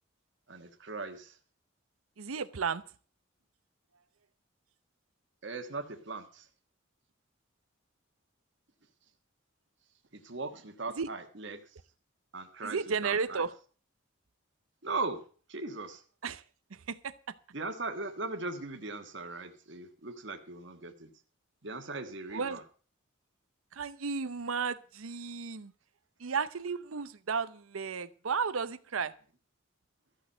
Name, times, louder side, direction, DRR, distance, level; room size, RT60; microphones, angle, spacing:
voice 1, 0.5-1.4 5.4-6.5 10.1-11.7 12.3-13.4 14.8-15.2 15.5-16.0 17.5-21.1 21.6-22.6, right 3 dB, 60° right, 1.5 m, -39 dB
voice 2, 2.2-2.8 11.0-11.1 12.6-13.5 16.2-16.4 16.7-17.4 22.3-22.6 23.7-25.7 26.2-29.1, right 5 dB, 90° right, 0.7 m, -34 dB
14.0 x 6.3 x 8.7 m
head